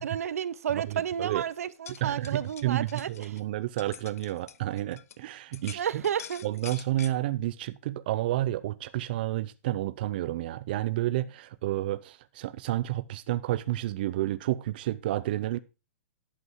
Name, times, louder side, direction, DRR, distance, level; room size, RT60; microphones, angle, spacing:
voice 1, 0.0-3.3 5.7-6.4, right 9 dB, 85° right, 0.8 m, -31 dB
voice 2, 0.7-1.4 1.9-6.0 6.4-15.6, right 15 dB, 40° right, 0.6 m, -30 dB
sound 1, 1.7-5.2 5.5-7.2, left 8 dB, 85° left, 0.8 m, -46 dB
11.5 x 7.7 x 4.6 m
hypercardioid pair, 170°, 8 cm